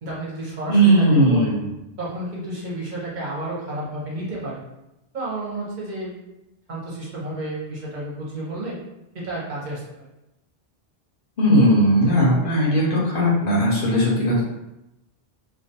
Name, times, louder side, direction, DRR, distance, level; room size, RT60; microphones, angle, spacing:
voice 1, 0.0-1.6 2.0-4.6 5.1-6.1 6.7-8.8 9.1-9.8, right 1 dB, 50° right, -6 dB, 0.8 m, -31 dB
voice 2, 0.7-1.7 11.4-14.4, right 1 dB, 65° left, -4 dB, 0.8 m, -18 dB
2.3 x 2.2 x 2.8 m, 0.91 s
omnidirectional pair, 1.0 m